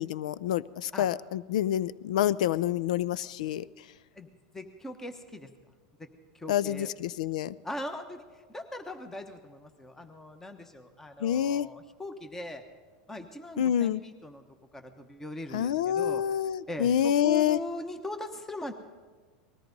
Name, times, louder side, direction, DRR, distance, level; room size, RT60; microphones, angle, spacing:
voice 1, 0.0-3.7 6.5-7.6 11.2-11.7 13.6-14.0 15.5-17.6, left 10 dB, 85° left, 20 dB, 0.4 m, -27 dB
voice 2, 4.5-5.5 6.0-6.1 6.3-6.9 7.6-12.6 13.1-14.4 14.7-16.2 16.7-18.7, left 1 dB, 10° left, 7 dB, 1.1 m, -40 dB
19.5 x 14.0 x 5.3 m, 1.4 s
supercardioid pair, 125°, 4 cm